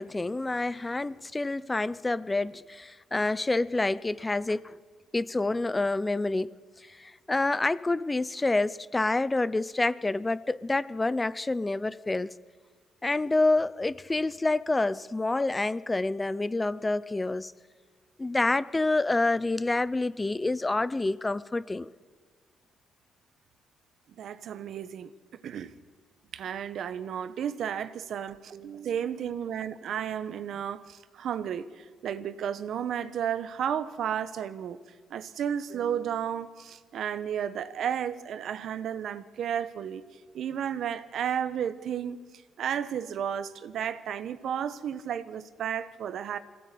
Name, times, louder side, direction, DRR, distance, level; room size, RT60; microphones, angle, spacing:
voice 1, 0.0-4.7 5.1-6.6 6.9-12.3 13.0-17.5 18.2-21.9, left 2 dB, 20° left, 0.6 m, -28 dB
voice 2, 24.2-25.1 25.4-25.7 26.3-34.8 35.1-40.0 40.3-42.2 42.6-46.4, right 9 dB, 70° right, 1.0 m, -33 dB
23.0 x 16.5 x 8.5 m
cardioid pair, 90°, 0 cm